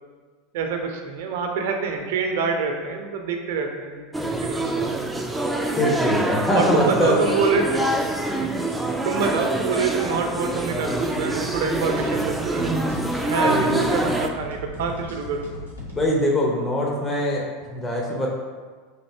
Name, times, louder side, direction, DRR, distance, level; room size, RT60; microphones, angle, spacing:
voice 1, 0.5-5.1 6.5-7.9 8.1-8.5 9.0-12.8 13.2-15.5, right 5 dB, 65° right, 3 dB, 0.5 m, -26 dB
sound 1, 4.1-14.3, right 1 dB, 5° right, 0.3 m, -25 dB
voice 2, 5.8-7.2 13.4-14.0 15.9-18.3, left 1 dB, 25° left, -2 dB, 0.7 m, -23 dB
sound 2, 10.4-15.9, left 1 dB, 85° left, 0.7 m, -38 dB
3.3 x 2.5 x 4.4 m, 1.5 s
hypercardioid pair, 85°, 0 cm